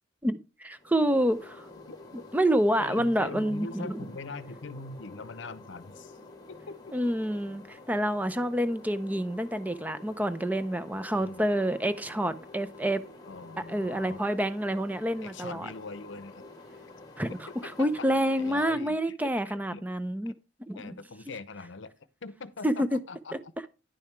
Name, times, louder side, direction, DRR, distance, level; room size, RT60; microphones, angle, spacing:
voice 1, 0.2-1.7 2.3-4.0 6.9-13.0 13.7-15.7 17.2-17.3 17.6-20.3 20.7-21.0 22.6-23.0, equal, 10° right, 0.6 m, -28 dB
sound 1, 0.7-18.6, left 2 dB, 20° left, 1.4 m, -49 dB
voice 2, 1.9-2.3 2.8-6.2 6.5-6.9 11.1-11.5 13.2-14.3 15.2-16.4 17.3-18.1 18.4-19.8 20.3-20.4 20.7-21.9 22.2-23.7, left 3 dB, 70° left, 0.7 m, -42 dB
10.5 x 5.6 x 4.5 m
head